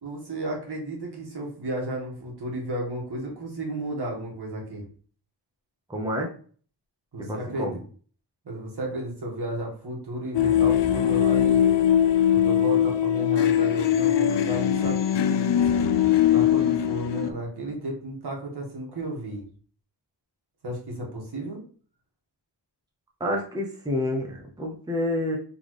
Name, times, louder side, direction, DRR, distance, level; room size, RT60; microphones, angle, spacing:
voice 1, 0.0-4.8 7.1-7.8 8.4-11.7 12.3-15.9 16.3-19.4 20.6-21.6, right 1 dB, 60° right, -1 dB, 1.7 m, -33 dB
voice 2, 5.9-6.3 7.3-7.8 23.2-25.4, left 1 dB, 10° right, -1 dB, 0.8 m, -28 dB
sound 1, 10.3-17.3, left 10 dB, 70° left, 0.5 m, -21 dB
4.1 x 3.5 x 3.1 m, 0.43 s
wide cardioid pair, 130°, 44 cm